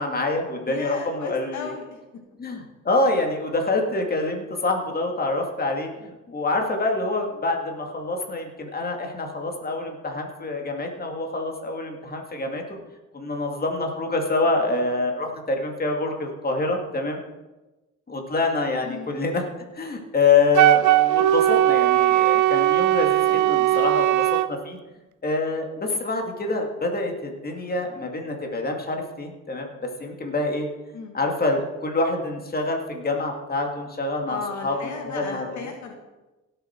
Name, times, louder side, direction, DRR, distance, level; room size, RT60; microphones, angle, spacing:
voice 1, 0.0-1.7 2.4-12.6 13.1-17.2 18.1-19.5 19.7-24.8 25.2-29.7 30.0-30.7 31.1-35.6, left 3 dB, 30° left, 2 dB, 2.2 m, -26 dB
voice 2, 0.6-2.0 18.8-19.1 23.3-23.8 30.9-31.1 34.3-35.9, left 4 dB, 70° left, 3 dB, 1.9 m, -36 dB
Wind instrument woodwind instrument, 20.5-24.5, right 15 dB, 75° right, 0.5 m, -19 dB
17.0 x 7.0 x 4.5 m, 1.1 s
cardioid pair, 90°, 30 cm